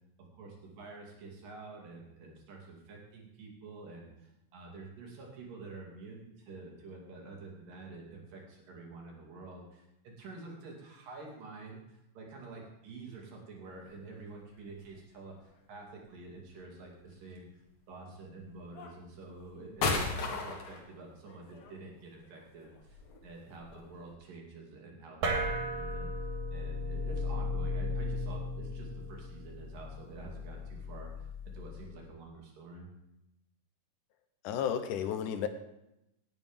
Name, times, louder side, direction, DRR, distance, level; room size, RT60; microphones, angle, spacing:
voice 1, 0.2-17.6 17.9-26.1 26.5-31.3 31.5-32.9, right 3 dB, 85° right, -1 dB, 4.2 m, -48 dB
sound 1, 13.7-13.8 14.5-15.1 16.5-17.1 18.0-18.2 18.8-24.1, left 3 dB, 55° left, 2.6 m, -37 dB
sound 2, 25.2-32.0, left 1 dB, 65° right, 3.2 m, -36 dB
voice 2, 34.4-35.5, left 9 dB, 75° left, 9 dB, 2.4 m, -32 dB
18.0 x 9.2 x 3.6 m, 0.86 s
omnidirectional pair, 3.8 m